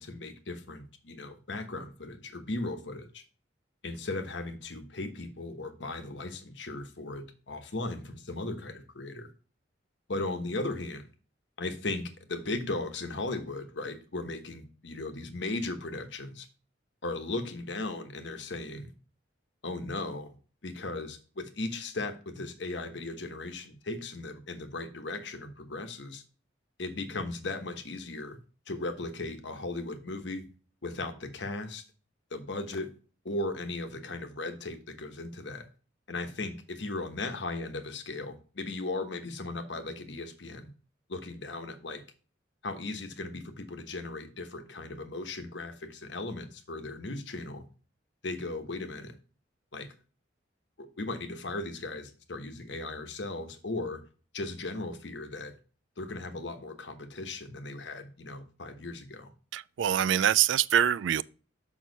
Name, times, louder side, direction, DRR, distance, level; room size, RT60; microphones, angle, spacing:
voice 1, 0.0-3.2 3.8-9.3 10.1-11.1 11.6-16.5 17.0-18.9 19.6-20.3 20.6-26.2 26.8-28.4 28.7-30.5 30.8-31.8 32.3-32.9 33.2-35.7 36.1-40.7 41.1-42.0 42.6-47.7 48.2-49.2 49.7-49.9 50.8-54.0 54.3-55.5 56.0-59.3, left 2 dB, 70° left, 1.1 m, -37 dB
voice 2, 59.5-61.2, right 10 dB, 75° right, 0.3 m, -24 dB
6.3 x 5.9 x 3.9 m
head